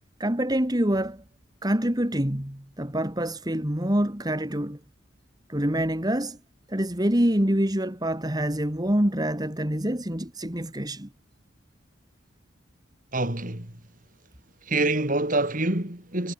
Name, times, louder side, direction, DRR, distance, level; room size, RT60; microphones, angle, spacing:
voice 1, 0.2-1.2 1.6-4.8 5.5-6.4 6.7-11.1, right 1 dB, 20° right, 2.6 m, -26 dB
voice 2, 13.1-13.7 14.7-16.3, right 2 dB, 45° right, 3.9 m, -26 dB
head